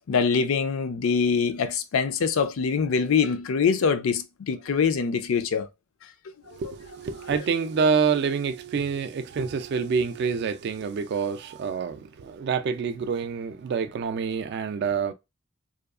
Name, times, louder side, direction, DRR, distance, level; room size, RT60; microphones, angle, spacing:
voice 1, 0.1-5.7, left 5 dB, 65° left, 0.4 m, -24 dB
voice 2, 6.5-15.1, right 5 dB, 50° right, 0.3 m, -27 dB
2.7 x 2.3 x 2.3 m
head